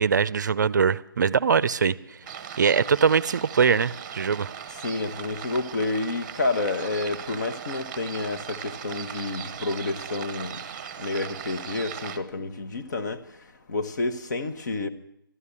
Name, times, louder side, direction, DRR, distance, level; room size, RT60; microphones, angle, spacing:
voice 1, 0.0-2.2 2.6-4.5, right 6 dB, 50° right, 0.5 m, -22 dB
sound 1, 2.3-12.2, right 8 dB, 25° right, 0.8 m, -38 dB
voice 2, 4.8-10.6 11.0-13.2 13.7-14.9, left 3 dB, 50° left, 1.1 m, -29 dB
12.5 x 11.0 x 8.4 m
hypercardioid pair, 160°, 12 cm